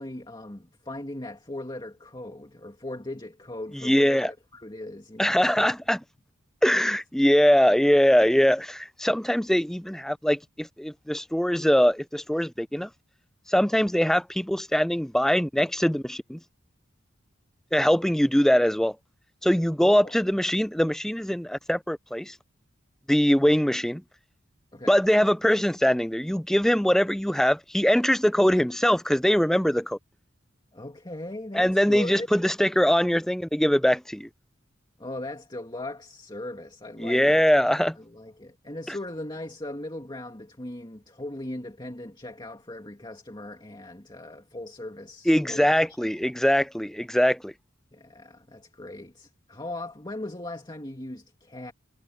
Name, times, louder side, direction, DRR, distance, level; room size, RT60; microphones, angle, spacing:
voice 1, 0.0-5.7 19.8-20.1 23.4-23.5 24.7-24.9 30.7-32.3 35.0-37.4 38.0-46.0 47.9-51.7, left 1 dB, 20° left, 2.2 m, -38 dB
voice 2, 3.8-4.3 5.2-6.0 6.6-12.9 13.5-16.4 17.7-18.9 19.4-22.3 23.1-24.0 24.9-30.0 31.5-34.3 37.0-38.0 45.3-47.5, equal, ahead, 0.4 m, -22 dB
head